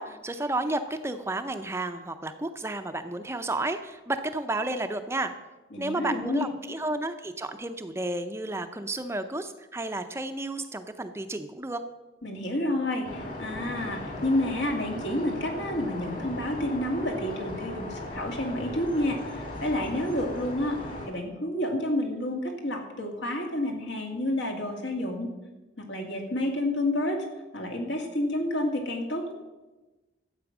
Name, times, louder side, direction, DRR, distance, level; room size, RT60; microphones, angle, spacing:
voice 1, 0.0-5.3 5.8-11.8, right 2 dB, 15° right, 8 dB, 0.5 m, -32 dB
voice 2, 5.7-6.5 12.2-25.3 25.8-27.3 27.5-29.3, left 1 dB, 75° left, 2 dB, 2.2 m, -29 dB
sound 1, 13.0-21.1, left 1 dB, 45° left, 2.9 m, -37 dB
12.5 x 8.0 x 6.0 m, 1.1 s
head